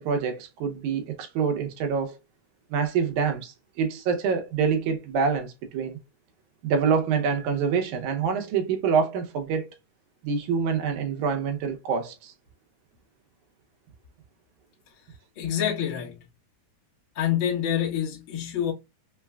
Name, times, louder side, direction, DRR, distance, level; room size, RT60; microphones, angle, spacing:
voice 1, 0.0-2.2 2.7-6.0 6.6-9.7 10.2-12.3, right 6 dB, 75° right, 2.2 m, -26 dB
voice 2, 15.4-16.2 17.2-18.7, left 10 dB, 50° left, 1.6 m, -26 dB
5.5 x 2.2 x 2.3 m
omnidirectional pair, 3.6 m